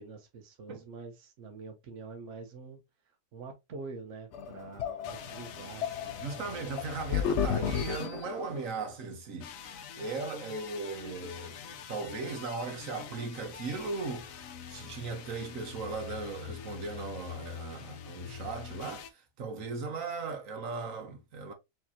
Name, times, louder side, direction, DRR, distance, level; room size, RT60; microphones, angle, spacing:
voice 1, 0.0-2.8 3.3-6.5, right 4 dB, 65° right, 1.2 m, -46 dB
sound 1, 4.3-8.7, left 8 dB, 65° left, 0.8 m, -33 dB
sound 2, 5.0-8.8 9.4-19.1, left 8 dB, 85° left, 1.1 m, -45 dB
voice 2, 6.2-21.5, right 4 dB, 80° right, 1.5 m, -38 dB
4.7 x 3.5 x 2.7 m
omnidirectional pair, 1.4 m